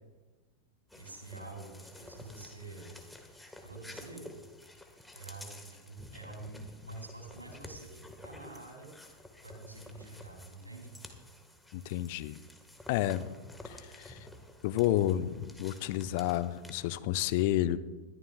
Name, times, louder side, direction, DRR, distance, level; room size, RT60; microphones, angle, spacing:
sound 1, 0.9-16.7, left 1 dB, 5° left, 1.5 m, -51 dB
voice 1, 0.9-3.0 3.6-4.4 5.1-8.9 9.4-10.9, right 2 dB, 85° right, 2 dB, 3.1 m, -47 dB
voice 2, 11.7-12.4 12.9-13.3 13.6-14.2 14.6-17.8, left 13 dB, 50° left, 13 dB, 0.6 m, -30 dB
21.5 x 12.5 x 2.3 m, 1.2 s
figure-of-eight pair, 90°, 0 cm